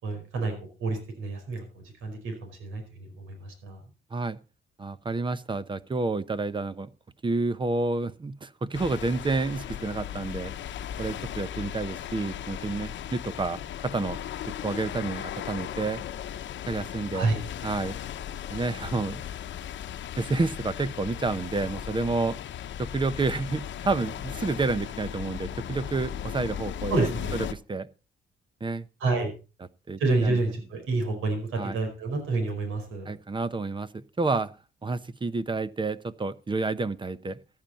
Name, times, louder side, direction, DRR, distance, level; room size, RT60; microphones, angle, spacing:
voice 1, 0.0-0.5 0.8-3.8 17.1-17.4 26.9-27.4 29.0-29.3 30.0-33.1, right 3 dB, 85° right, 6 dB, 4.8 m, -29 dB
voice 2, 4.8-6.9 7.2-10.5 11.0-14.2 14.6-16.0 16.7-17.3 17.6-18.0 18.5-19.2 20.2-22.4 22.8-27.9 28.6-28.9 29.9-30.4 31.6-31.8 33.1-34.5 34.8-37.4, right 3 dB, 25° right, 15 dB, 0.8 m, -29 dB
sound 1, 8.7-27.5, left 10 dB, 70° left, 1.0 m, -37 dB
15.0 x 10.5 x 4.2 m, 0.32 s
cardioid pair, 90°, 20 cm